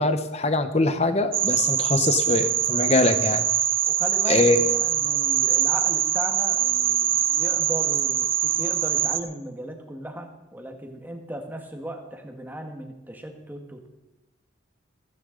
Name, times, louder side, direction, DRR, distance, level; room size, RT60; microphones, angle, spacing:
voice 1, 0.0-3.5 4.3-4.6, left 2 dB, 30° left, 10 dB, 0.9 m, -22 dB
sound 1, 1.3-9.2, right 11 dB, 45° right, 0.7 m, -23 dB
voice 2, 3.8-13.9, right 1 dB, 10° right, 3 dB, 1.5 m, -36 dB
16.0 x 15.0 x 3.9 m, 1.0 s
head